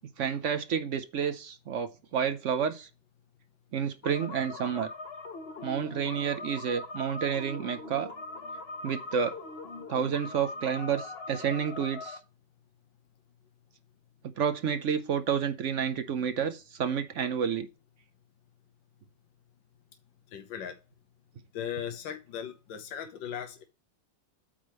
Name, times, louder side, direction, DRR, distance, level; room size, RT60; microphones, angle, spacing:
voice 1, 0.2-2.9 3.7-4.9 5.6-8.1 8.8-9.4 9.9-12.2 14.4-17.7, right 7 dB, 65° right, 0.7 m, -30 dB
sound 1, 4.0-12.2, left 3 dB, 40° left, 1.1 m, -41 dB
voice 2, 20.3-20.7 21.5-23.6, left 9 dB, 80° left, 1.6 m, -38 dB
8.8 x 3.4 x 6.2 m
omnidirectional pair, 2.0 m